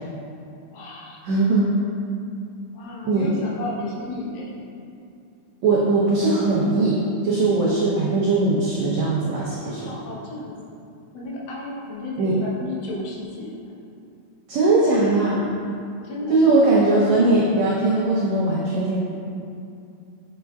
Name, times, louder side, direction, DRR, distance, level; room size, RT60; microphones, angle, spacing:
voice 1, 0.7-1.2 2.7-4.7 9.6-10.6 11.1-13.7 16.0-16.8, left 1 dB, 80° left, -5 dB, 2.8 m, -33 dB
voice 2, 1.2-1.7 3.0-3.3 5.6-7.0 7.2-9.9 12.2-12.4 14.5-15.4 16.3-19.0, right 2 dB, 90° right, -6 dB, 1.5 m, -20 dB
7.3 x 6.5 x 2.3 m, 2.5 s
omnidirectional pair, 4.2 m